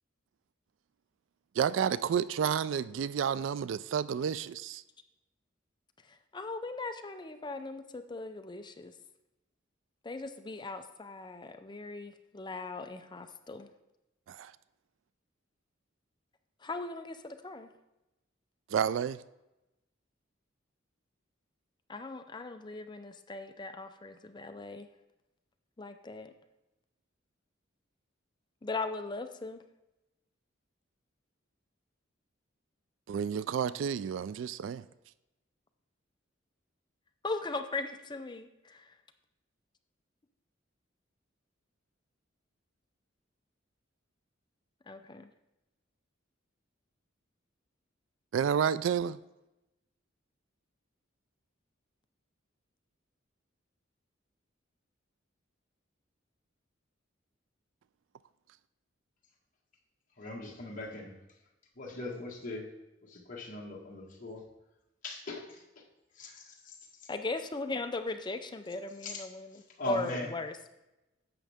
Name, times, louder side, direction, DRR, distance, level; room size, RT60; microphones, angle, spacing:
voice 1, 1.6-4.8 14.3-14.5 18.7-19.2 33.1-34.8 48.3-49.2, right 7 dB, 70° right, 0.3 m, -30 dB
voice 2, 6.3-8.9 10.0-13.7 16.6-17.7 21.9-24.9 25.8-26.3 28.6-29.6 37.2-38.8 44.9-45.3 67.1-69.6 69.8-70.7, left 3 dB, 25° left, 0.5 m, -38 dB
voice 3, 60.2-61.1 61.7-62.7 63.0-64.4 65.0-65.6 66.1-66.7 69.0-69.2 69.5-70.3, left 2 dB, 45° left, 1.6 m, -40 dB
10.5 x 7.5 x 3.5 m
head